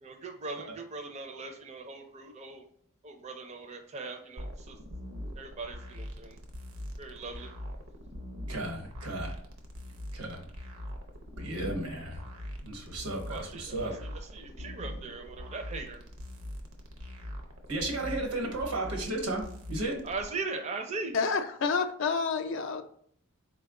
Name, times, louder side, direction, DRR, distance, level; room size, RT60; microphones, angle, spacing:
voice 1, 0.0-2.6 3.0-4.7 5.4-6.4 7.0-7.5 11.6-12.0 13.3-16.0 20.0-21.2, right 3 dB, 30° right, 4 dB, 0.4 m, -40 dB
sound 1, 4.4-20.3, equal, 70° right, 0.6 m, -42 dB
voice 2, 8.5-9.3 10.1-10.4 11.4-12.2 12.6-14.1 17.7-19.4 19.7-20.0, right 2 dB, 90° right, 2 dB, 1.1 m, -34 dB
voice 3, 21.1-22.8, left 5 dB, 60° left, 8 dB, 0.4 m, -29 dB
4.2 x 2.2 x 3.6 m, 0.63 s
head